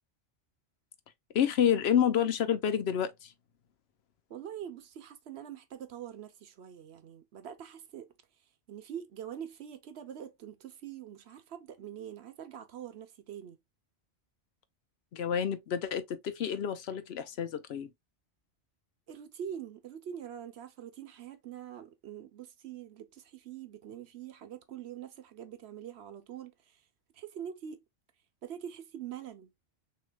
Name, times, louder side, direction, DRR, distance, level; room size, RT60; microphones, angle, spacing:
voice 1, 1.3-3.3 15.1-17.9, left 9 dB, 70° left, 0.8 m, -29 dB
voice 2, 4.3-8.1 8.7-13.6 19.1-26.8 27.1-27.8 28.4-29.5, right 9 dB, 70° right, 1.0 m, -44 dB
6.2 x 2.9 x 2.2 m
omnidirectional pair, 1.2 m